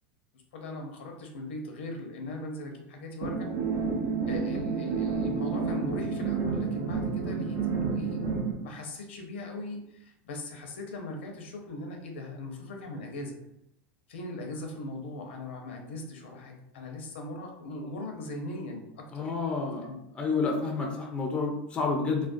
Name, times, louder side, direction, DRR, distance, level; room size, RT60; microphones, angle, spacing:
voice 1, 0.5-3.8 4.3-13.4 14.1-19.3 19.8-20.0, left 2 dB, 90° left, 2 dB, 0.6 m, -39 dB
sound 1, 3.2-8.5, right 5 dB, 50° right, 0.5 m, -30 dB
voice 2, 19.1-19.9 20.2-22.3, left 4 dB, 15° left, 1 dB, 0.4 m, -29 dB
2.3 x 2.1 x 2.5 m, 0.81 s
supercardioid pair, 145°, 6 cm